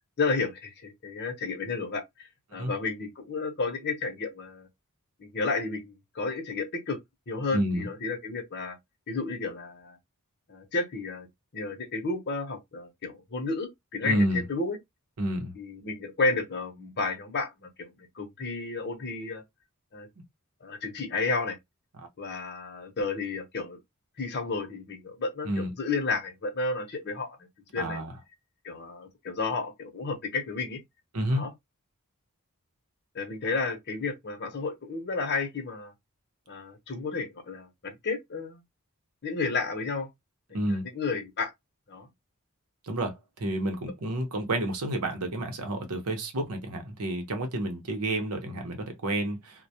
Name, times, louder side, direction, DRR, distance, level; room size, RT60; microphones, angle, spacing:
voice 1, 0.2-4.7 5.2-7.0 7.3-8.8 9.1-10.0 10.5-11.3 11.5-14.8 15.5-19.4 19.9-20.1 20.6-21.6 22.2-23.8 24.2-27.5 27.7-28.0 28.6-30.8 31.3-31.5 33.1-35.9 36.5-38.6 39.2-40.1 40.7-41.5 41.9-42.1, left 3 dB, 50° left, 0.7 m, -32 dB
voice 2, 7.5-7.9 14.0-14.4 15.2-15.5 25.4-25.7 27.8-28.1 31.1-31.4 40.5-40.8 42.8-49.7, right 1 dB, 80° right, 0.8 m, -30 dB
2.2 x 2.1 x 2.7 m
head